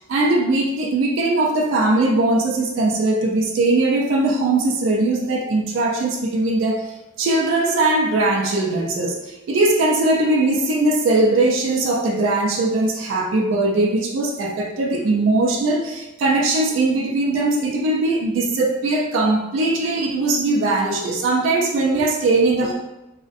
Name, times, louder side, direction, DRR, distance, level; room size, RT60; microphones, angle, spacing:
voice 1, 0.1-22.7, right 2 dB, 75° right, 0 dB, 0.3 m, -20 dB
2.4 x 2.1 x 2.5 m, 0.98 s
head